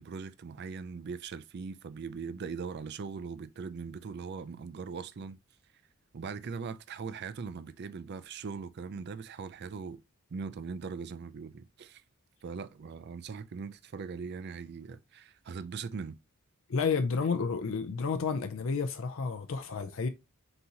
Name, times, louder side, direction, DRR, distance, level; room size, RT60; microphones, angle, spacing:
voice 1, 0.0-5.4 6.1-10.0 10.3-12.0 12.4-16.2, right 5 dB, 50° right, 0.4 m, -40 dB
voice 2, 16.7-20.1, left 5 dB, 65° left, 0.5 m, -31 dB
4.0 x 3.9 x 2.8 m
head